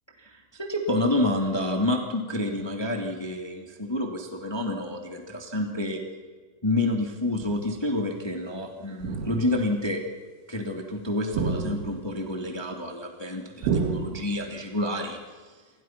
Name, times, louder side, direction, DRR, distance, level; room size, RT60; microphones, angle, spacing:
voice 1, 0.2-6.0 6.6-10.0 10.5-15.2, left 1 dB, 40° left, 2 dB, 0.3 m, -28 dB
sound 1, 7.4-7.8 9.0-9.8 11.3-12.3 13.6-14.6, right 5 dB, 85° right, 4.5 m, -30 dB
29.0 x 24.0 x 6.0 m, 1.5 s
omnidirectional pair, 5.5 m